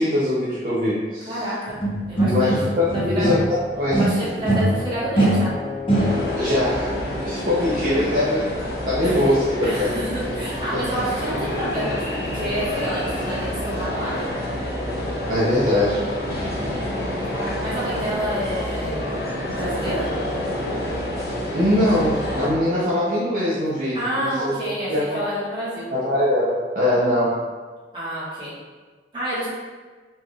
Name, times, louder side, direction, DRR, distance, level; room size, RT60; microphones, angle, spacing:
voice 1, 0.0-1.4 2.2-3.4 3.7-4.0 6.4-6.9 7.3-8.5 8.9-9.9 15.3-16.0 21.5-24.5 24.9-25.2 25.9-27.4, left 1 dB, 45° right, -9 dB, 0.6 m, -22 dB
voice 2, 1.3-1.8 2.1-2.5 2.9-3.3 4.0-5.5 9.0-9.2 9.6-12.0 12.3-14.3 17.3-18.9 19.5-20.1 23.9-25.9 27.9-28.6 29.1-29.5, equal, 25° right, -9 dB, 1.2 m, -28 dB
sound 1, 1.8-3.6 3.9-6.5, right 1 dB, 30° left, 0.6 m, -22 dB
sound 2, 5.9-22.5, equal, 70° left, 1.1 m, -28 dB
4.1 x 2.3 x 3.2 m, 1.4 s
head